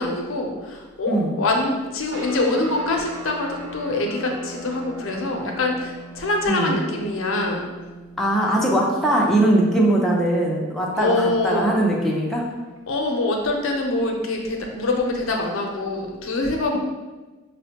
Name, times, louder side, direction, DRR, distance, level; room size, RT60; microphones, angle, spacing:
voice 1, 0.0-7.7 10.9-11.7 12.9-16.8, left 2 dB, 80° left, 1 dB, 0.6 m, -24 dB
sound 1, 2.1-12.8, right 1 dB, 70° right, 0.8 m, -41 dB
voice 2, 8.2-12.4, right 1 dB, ahead, -4 dB, 0.4 m, -20 dB
5.0 x 2.1 x 2.8 m, 1.2 s
head